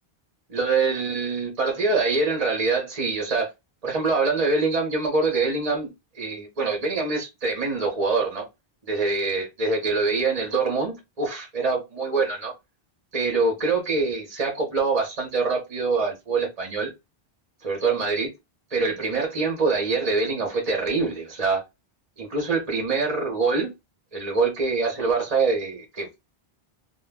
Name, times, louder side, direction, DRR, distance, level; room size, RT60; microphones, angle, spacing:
voice 1, 0.5-3.5 3.8-8.4 8.9-12.5 13.1-16.9 17.6-18.3 18.7-21.6 22.2-23.7 24.1-26.2, right 4 dB, 40° right, 0.7 m, -24 dB
2.2 x 2.0 x 3.3 m
omnidirectional pair, 1.0 m